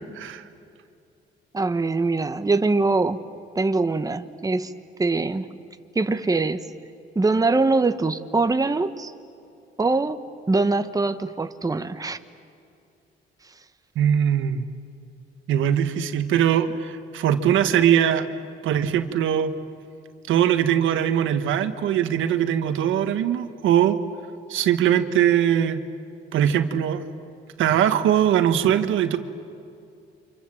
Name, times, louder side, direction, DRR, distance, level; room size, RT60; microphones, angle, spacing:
voice 1, 1.5-3.2 3.5-4.7 5.0-5.5 5.9-6.6 7.1-9.1 9.8-12.2, right 3 dB, 20° right, 9 dB, 1.2 m, -23 dB
voice 2, 13.9-14.6 15.5-18.3 18.6-19.5 20.3-24.0 24.5-25.8 26.3-27.0 27.6-29.2, right 10 dB, 85° right, 9 dB, 1.5 m, -21 dB
29.5 x 26.5 x 7.7 m, 2.5 s
cardioid pair, 90°, 20 cm